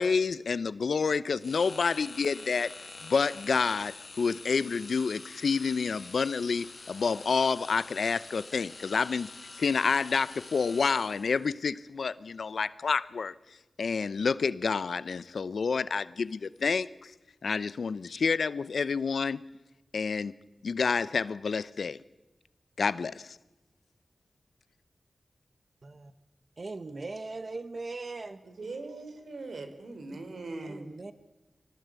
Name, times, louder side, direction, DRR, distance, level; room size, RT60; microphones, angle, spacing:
voice 1, 0.0-2.7 3.0-9.3 9.6-13.3 13.8-17.1 17.4-19.4 19.9-20.3 20.6-22.0 22.8-23.4, left 5 dB, 85° left, 0.8 m, -29 dB
sound 1, 1.4-11.5, left 3 dB, 50° left, 1.7 m, -46 dB
voice 2, 26.6-28.4 30.1-30.3 30.6-31.1, right 3 dB, 45° right, 1.3 m, -39 dB
voice 3, 28.6-30.9, right 3 dB, 80° right, 3.5 m, -40 dB
24.5 x 18.5 x 8.3 m
wide cardioid pair, 105°, 0 cm